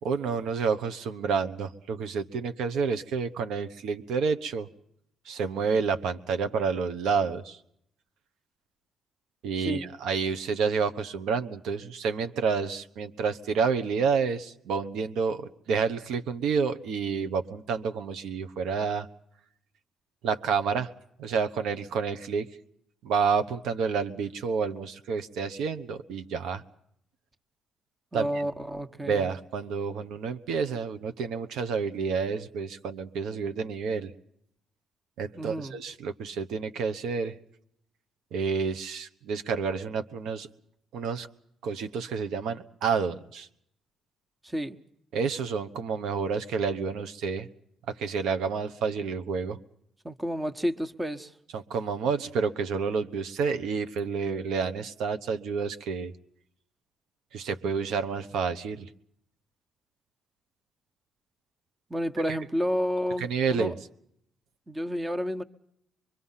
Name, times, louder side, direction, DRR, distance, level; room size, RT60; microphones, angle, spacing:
voice 1, 0.0-4.7 5.2-7.6 9.4-19.1 20.2-20.9 21.2-22.5 23.0-26.6 28.1-28.5 29.0-34.1 35.2-37.4 38.3-40.5 40.9-41.3 41.6-43.5 45.1-47.5 47.9-49.6 51.5-56.1 57.3-58.9 63.2-63.7, right 5 dB, 85° right, 9 dB, 1.0 m, -29 dB
voice 2, 28.1-29.2 35.4-35.8 44.4-44.8 50.0-51.3 61.9-63.7 64.7-65.4, equal, 15° right, 9 dB, 1.1 m, -30 dB
24.0 x 23.5 x 5.7 m, 0.72 s
cardioid pair, 90°, 0 cm